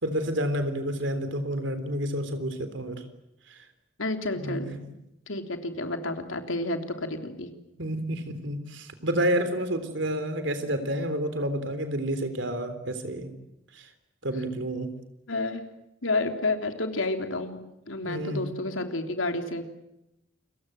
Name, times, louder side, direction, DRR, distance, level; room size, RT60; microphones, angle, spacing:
voice 1, 0.0-3.0 3.5-3.7 4.3-4.9 7.8-13.3 13.7-13.9 14.2-14.9 18.0-18.4, equal, 65° right, 9 dB, 3.6 m, -29 dB
voice 2, 4.0-4.7 5.3-7.5 15.3-15.7 16.0-17.6 17.9-19.6, left 2 dB, 85° left, 5 dB, 3.3 m, -30 dB
29.5 x 23.0 x 7.8 m, 0.87 s
head